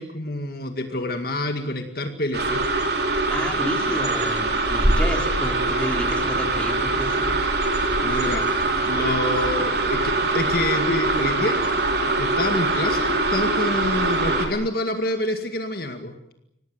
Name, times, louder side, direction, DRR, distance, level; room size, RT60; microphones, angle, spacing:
voice 1, 0.0-2.6 8.0-8.5 8.9-11.6 12.2-16.3, left 2 dB, 55° left, 6 dB, 2.1 m, -27 dB
sound 1, 2.3-14.5, right 2 dB, 60° right, 4.1 m, -23 dB
voice 2, 3.3-7.3 8.1-8.2, equal, 5° left, 1 dB, 4.1 m, -31 dB
26.0 x 18.0 x 9.7 m, 0.83 s
head